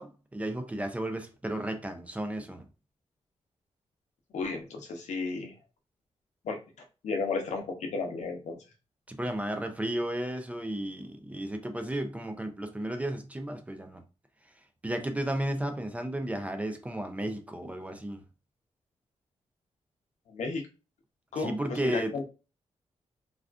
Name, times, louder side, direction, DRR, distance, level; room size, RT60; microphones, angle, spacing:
voice 1, 0.0-2.7 9.1-14.0 14.8-18.2 21.4-22.1, right 1 dB, 10° right, 0.3 m, -33 dB
voice 2, 4.3-5.5 6.4-6.6 7.0-8.6 20.3-20.7 21.3-22.2, left 4 dB, 85° left, 0.7 m, -33 dB
3.5 x 2.3 x 2.4 m
wide cardioid pair, 150°, 12 cm